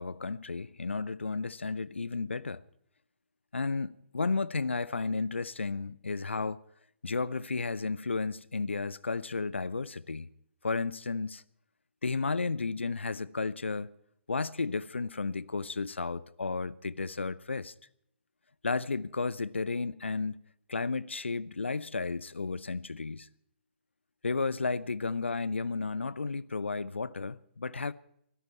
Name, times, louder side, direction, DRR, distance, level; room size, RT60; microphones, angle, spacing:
voice 1, 0.0-2.6 3.5-6.6 7.0-10.3 10.6-11.4 12.0-14.0 14.3-17.7 18.6-20.4 20.7-23.3 24.2-27.9, left 4 dB, 75° left, 0.7 m, -33 dB
24.0 x 13.0 x 4.5 m
figure-of-eight pair, 130°, 6 cm